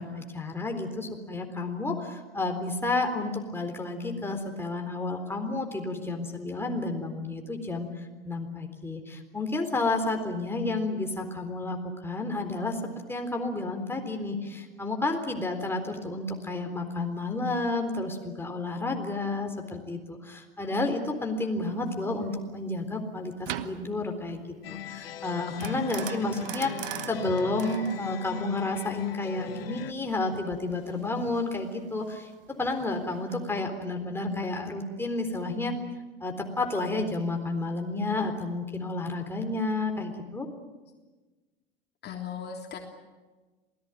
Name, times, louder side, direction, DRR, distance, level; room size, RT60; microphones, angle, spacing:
voice 1, 0.0-12.8 13.1-24.4 24.7-26.7 27.1-35.7 36.2-40.5, left 2 dB, 10° left, 3 dB, 3.9 m, -31 dB
sound 1, 21.6-33.6, right 13 dB, 70° right, 1.3 m, -43 dB
sound 2, 24.6-29.9, left 11 dB, 80° left, 0.9 m, -40 dB
voice 2, 25.5-26.5 42.0-42.8, left 7 dB, 35° left, 2 dB, 3.4 m, -40 dB
27.5 x 19.0 x 9.1 m, 1.3 s
hypercardioid pair, 80°, 29 cm